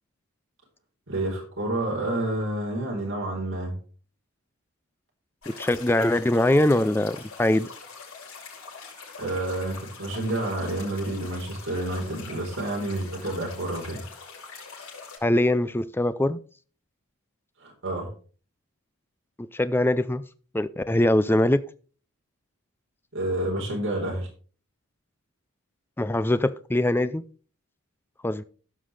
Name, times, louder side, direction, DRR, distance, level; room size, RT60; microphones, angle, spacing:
voice 1, 1.1-3.8 9.2-14.0 17.6-18.1 23.1-24.3, right 1 dB, 60° right, 4.0 m, -29 dB
sound 1, 5.4-15.2, left 4 dB, 70° left, 5.5 m, -43 dB
voice 2, 5.6-7.7 15.2-16.4 19.5-20.2 20.5-21.6 26.0-27.2 28.2-28.4, left 1 dB, 10° left, 0.4 m, -22 dB
16.5 x 5.6 x 3.3 m
head